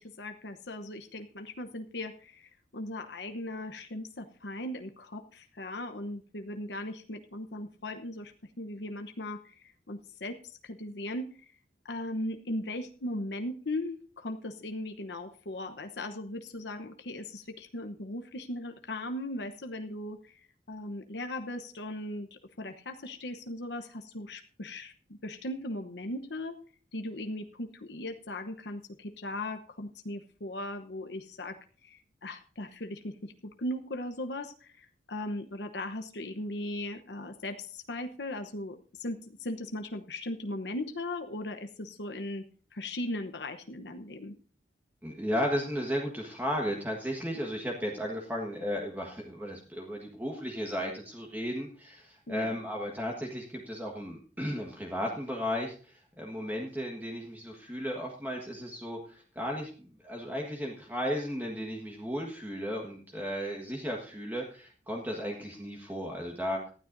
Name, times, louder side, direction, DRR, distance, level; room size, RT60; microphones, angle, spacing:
voice 1, 0.0-8.3 8.6-11.5 11.8-26.6 26.9-31.6 31.8-42.4 42.7-44.4 52.3-52.6, left 1 dB, 75° left, 7 dB, 1.0 m, -38 dB
voice 2, 45.0-59.7 60.0-66.7, equal, 10° right, -1 dB, 1.5 m, -35 dB
18.5 x 12.5 x 2.7 m, 0.41 s
head